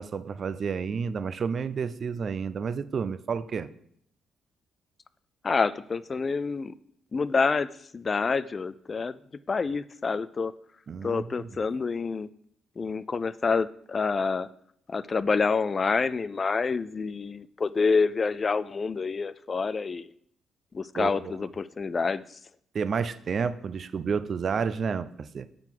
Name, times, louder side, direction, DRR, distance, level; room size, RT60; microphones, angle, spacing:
voice 1, 0.0-3.7 10.9-11.5 20.9-21.3 22.7-25.5, right 6 dB, 50° right, 14 dB, 0.5 m, -30 dB
voice 2, 5.4-6.7 7.1-9.1 9.5-10.5 11.0-12.3 12.8-14.5 14.9-20.1 20.7-22.2, left 4 dB, 35° left, 16 dB, 0.3 m, -27 dB
9.0 x 3.8 x 5.9 m, 0.67 s
cardioid pair, 90°, 0 cm